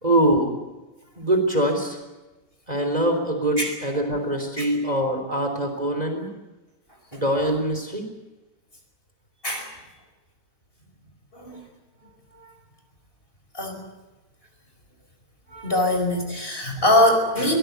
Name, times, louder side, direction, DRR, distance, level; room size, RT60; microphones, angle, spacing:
voice 1, 0.0-0.5 1.2-2.0 2.7-6.3 7.1-8.1, right 1 dB, 25° right, 4 dB, 3.7 m, -23 dB
voice 2, 9.4-9.7 11.3-11.7 12.3-12.5 13.5-13.9 15.5-17.6, left 1 dB, 35° left, 4 dB, 5.4 m, -23 dB
23.5 x 19.5 x 8.1 m, 1.1 s
omnidirectional pair, 1.6 m